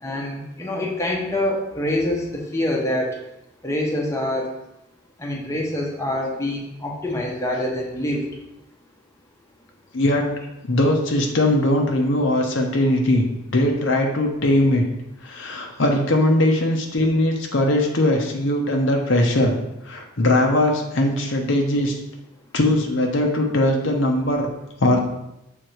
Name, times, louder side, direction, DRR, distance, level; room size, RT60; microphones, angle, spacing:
voice 1, 0.0-3.1 3.6-4.5 5.2-8.3, left 1 dB, 15° left, -2 dB, 0.9 m, -25 dB
voice 2, 9.9-10.3 10.6-14.8 15.2-19.6 19.8-22.0 22.5-24.5 24.8-25.0, left 1 dB, 70° left, 1 dB, 0.9 m, -20 dB
6.5 x 3.7 x 4.5 m, 0.89 s
head